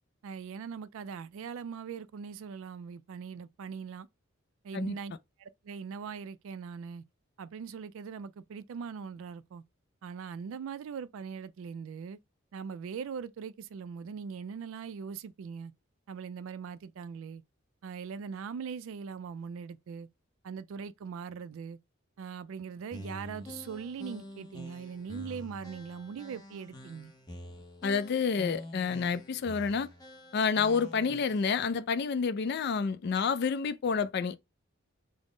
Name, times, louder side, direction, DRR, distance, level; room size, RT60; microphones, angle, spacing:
voice 1, 0.2-4.1 4.6-5.1 5.4-7.0 7.4-9.6 10.0-12.2 12.5-15.7 16.1-17.4 17.8-20.1 20.4-21.8 22.2-27.1, right 6 dB, 70° right, 0.3 m, -41 dB
sound 1, 22.9-31.6, left 1 dB, 20° left, 0.7 m, -47 dB
voice 2, 27.8-29.9 30.3-34.4, left 5 dB, 50° left, 0.3 m, -29 dB
3.6 x 2.0 x 3.7 m
head